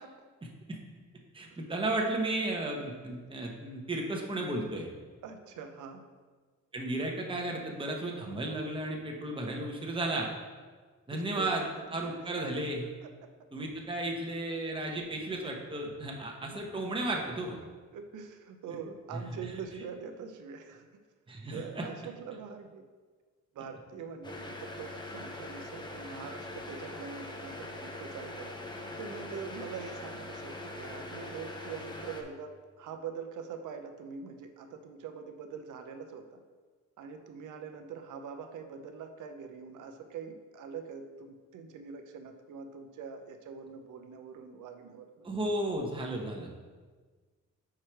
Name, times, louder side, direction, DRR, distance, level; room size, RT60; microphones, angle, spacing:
voice 1, 1.3-4.9 6.7-10.3 11.1-11.6 11.9-12.9 13.5-17.6 19.1-19.2 21.3-21.9 45.2-46.5, right 2 dB, 15° right, 0 dB, 0.9 m, -34 dB
voice 2, 5.2-6.1 11.1-11.6 13.0-13.3 16.4-16.6 17.6-20.9 21.5-22.9 23.5-36.4 37.0-45.3, right 6 dB, 75° right, 6 dB, 0.6 m, -44 dB
sound 1, 24.2-32.2, left 2 dB, 15° left, 0.7 m, -42 dB
4.8 x 4.7 x 4.5 m, 1.4 s
cardioid pair, 80°, 31 cm